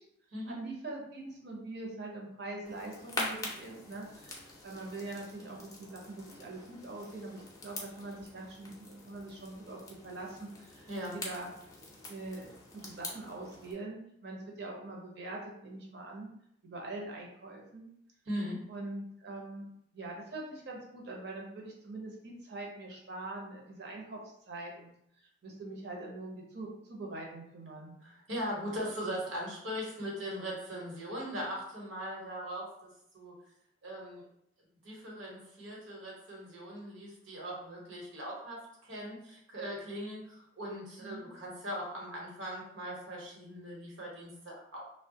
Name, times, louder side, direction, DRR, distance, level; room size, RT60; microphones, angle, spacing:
voice 1, 0.5-10.9 11.1-11.5 12.1-16.3 16.6-17.8 18.7-24.2 24.5-24.9 25.2-28.0 41.0-41.3, right 2 dB, 55° right, -1 dB, 0.7 m, -43 dB
sound 1, 2.6-13.7, left 2 dB, 20° left, 0.5 m, -45 dB
voice 2, 18.2-18.6 28.0-32.7 33.1-33.3 33.8-34.2 34.8-44.8, equal, 85° right, -3 dB, 1.1 m, -40 dB
3.0 x 2.2 x 2.7 m, 0.75 s
head